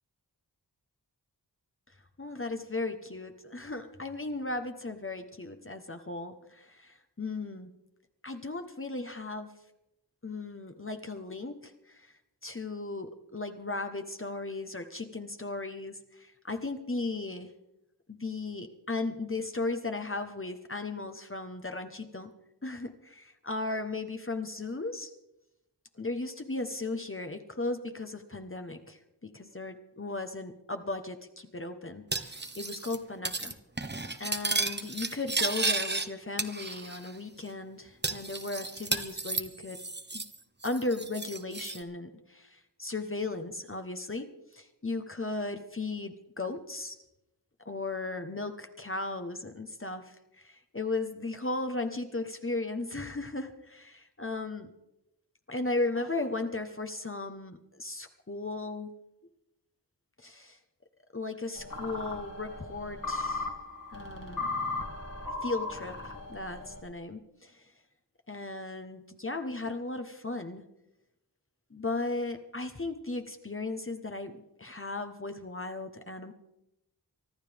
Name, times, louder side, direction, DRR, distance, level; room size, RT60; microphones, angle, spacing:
voice 1, 1.9-7.7 8.2-9.5 10.2-17.5 18.1-22.3 22.6-25.1 26.0-33.6 34.2-39.8 40.1-40.2 40.6-47.0 47.6-54.7 55.5-58.9 60.2-60.6 61.1-63.5 63.9-64.5 65.3-67.7 68.3-70.6 71.7-76.3, left 2 dB, 30° left, 7 dB, 1.2 m, -36 dB
Cutlery silverware, 32.1-33.0 33.2-33.5 33.8-36.1 36.4-37.1 37.4-37.5 38.0-40.4 40.6-41.8, right 3 dB, 25° right, 1.1 m, -33 dB
sound 1, 61.6-66.8, left 3 dB, 55° left, 2.5 m, -37 dB
24.5 x 12.5 x 3.5 m, 0.90 s
wide cardioid pair, 65°, 40 cm